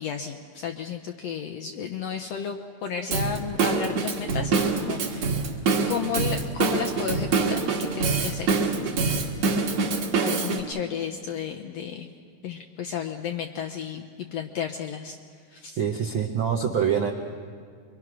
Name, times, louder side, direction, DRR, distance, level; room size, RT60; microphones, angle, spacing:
voice 1, 0.0-5.4 5.8-8.6 8.9-9.6 10.2-12.1 12.4-14.0 14.3-15.2 15.5-15.8, left 7 dB, 75° left, 6 dB, 1.5 m, -33 dB
Drum kit / Drum, 3.1-10.6, right 4 dB, 55° right, 2.7 m, -25 dB
voice 2, 15.8-17.1, right 8 dB, 75° right, 3 dB, 1.1 m, -25 dB
25.5 x 23.5 x 6.1 m, 2.1 s
omnidirectional pair, 3.8 m